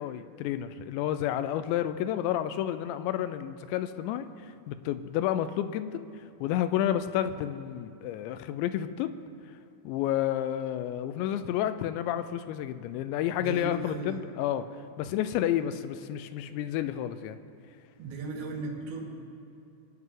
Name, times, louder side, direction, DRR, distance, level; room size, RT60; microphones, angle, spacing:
voice 1, 0.0-4.3 4.7-6.1 6.4-9.2 9.8-14.7 15.0-17.4, left 11 dB, 85° left, 12 dB, 2.9 m, -30 dB
voice 2, 13.4-14.2 18.0-19.1, right 3 dB, 85° right, -1 dB, 4.5 m, -36 dB
25.5 x 9.4 x 3.8 m, 2.8 s
omnidirectional pair, 5.2 m